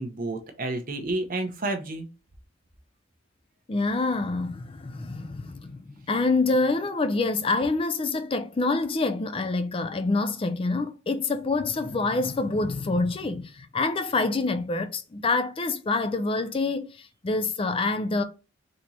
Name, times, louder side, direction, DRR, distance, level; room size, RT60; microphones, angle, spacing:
voice 1, 0.0-2.1, right 2 dB, 45° right, 0.9 m, -30 dB
voice 2, 3.7-18.2, left 3 dB, 30° left, 0.4 m, -26 dB
4.2 x 3.0 x 4.1 m
head